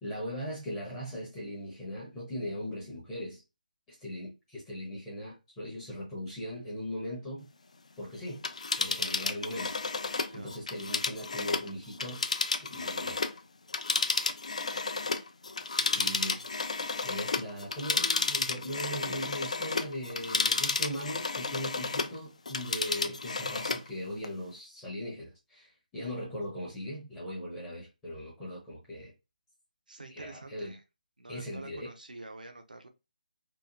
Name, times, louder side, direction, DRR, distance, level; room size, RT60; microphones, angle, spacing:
voice 1, 0.0-3.4 3.9-7.4 8.0-8.4 8.8-9.8 10.3-12.2 12.6-13.3 15.9-16.4 17.0-29.1 30.1-30.7 31.3-31.9, equal, 10° left, 0.7 m, -39 dB
Telephone, 8.3-13.4 13.7-22.2 22.5-23.9 24.2-24.3, left 4 dB, 50° left, 0.4 m, -32 dB
voice 2, 10.3-10.7 15.7-16.5 29.9-30.8 31.2-32.9, right 2 dB, 70° right, 0.5 m, -48 dB
2.8 x 2.3 x 2.4 m
figure-of-eight pair, 150°, 5 cm